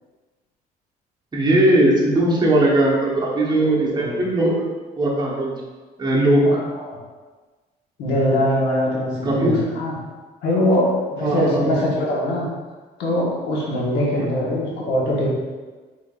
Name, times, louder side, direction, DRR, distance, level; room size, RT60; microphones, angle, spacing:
voice 1, 1.3-4.7 5.0-5.5 6.0-6.4 9.2-9.6 11.2-11.9 14.1-14.3, right 1 dB, 25° right, -4 dB, 1.1 m, -19 dB
voice 2, 3.5-4.2 6.4-7.0 8.0-10.0 10.4-12.4 13.0-15.3, left 1 dB, 90° left, -4 dB, 1.2 m, -22 dB
4.9 x 3.8 x 2.4 m, 1.3 s
cardioid pair, 110°, 17 cm